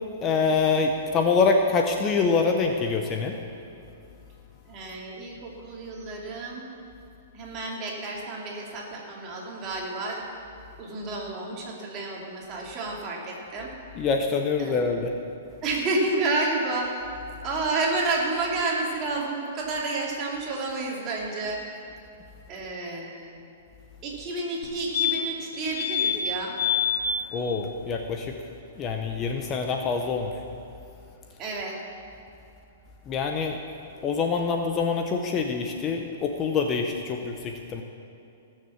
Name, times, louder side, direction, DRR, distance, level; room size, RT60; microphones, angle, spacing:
voice 1, 0.2-3.4 14.0-15.1 27.3-28.3 28.8-30.3 33.1-33.6 34.0-37.8, left 4 dB, 25° left, 4 dB, 0.8 m, -25 dB
voice 2, 4.7-6.7 7.3-10.2 10.8-13.7 14.6-15.0 15.6-17.1 17.4-21.7 22.5-23.3 24.0-26.6 31.4-31.7, right 2 dB, 30° right, -2 dB, 2.6 m, -30 dB
sound 1, 24.6-24.7 24.9-25.4 25.8-26.2 26.6-27.0 29.4-29.5 29.7-29.8, left 9 dB, 70° left, 2.7 m, -25 dB
17.5 x 6.6 x 7.2 m, 2.7 s
hypercardioid pair, 150°, 0 cm